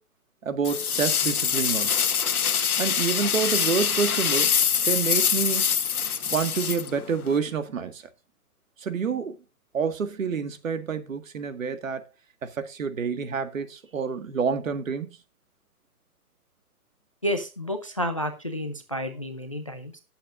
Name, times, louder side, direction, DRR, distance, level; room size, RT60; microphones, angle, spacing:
voice 1, 0.4-2.0 2.8-4.5 4.8-5.7 6.3-8.0 8.8-9.4 9.7-12.0 12.4-15.2, right 6 dB, 55° right, 2.0 m, -28 dB
sound 1, 0.6-7.4, left 7 dB, 65° left, 1.5 m, -24 dB
voice 2, 17.2-20.0, equal, 20° left, 0.6 m, -30 dB
18.5 x 8.0 x 2.6 m
hypercardioid pair, 175°, 46 cm